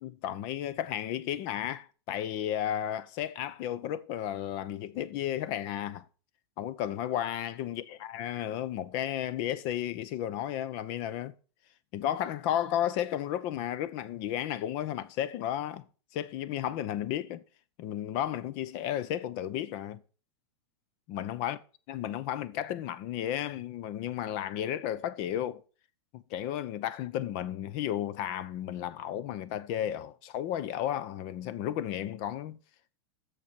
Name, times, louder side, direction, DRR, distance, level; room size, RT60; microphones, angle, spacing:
voice 1, 0.0-6.1 6.6-11.3 11.9-15.8 16.1-17.4 17.8-20.0 21.1-21.6 21.9-25.6 26.1-32.6, left 11 dB, 45° left, 0.7 m, -33 dB
6.9 x 6.7 x 6.1 m
supercardioid pair, 145°, 14 cm